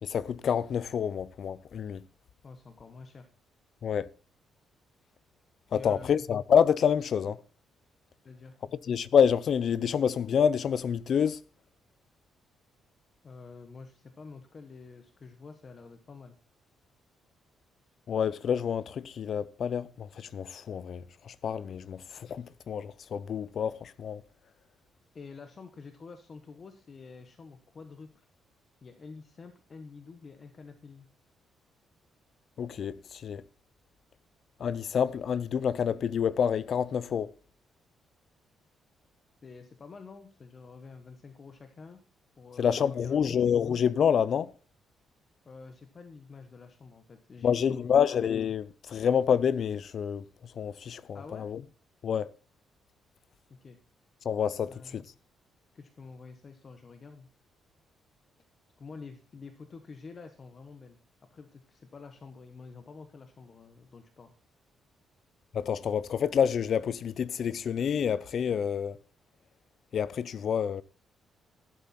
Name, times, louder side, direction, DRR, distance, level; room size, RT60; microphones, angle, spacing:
voice 1, 0.0-2.0 3.8-4.1 5.7-7.4 8.9-11.4 18.1-24.2 32.6-33.4 34.6-37.3 42.6-44.5 47.4-50.2 50.6-51.6 52.0-52.3 54.2-55.0 65.5-69.0 69.9-70.8, left 7 dB, 45° left, 0.6 m, -28 dB
voice 2, 2.4-3.3 5.7-6.1 8.2-8.5 13.2-16.4 25.1-28.3 28.8-31.1 39.4-42.0 42.4-43.4 45.4-48.0 51.1-51.5 53.6-53.8 54.6-55.0 55.7-57.3 58.8-61.0 61.3-64.3, left 4 dB, 30° left, 1.1 m, -48 dB
13.5 x 11.5 x 4.3 m
cardioid pair, 170°, 0 cm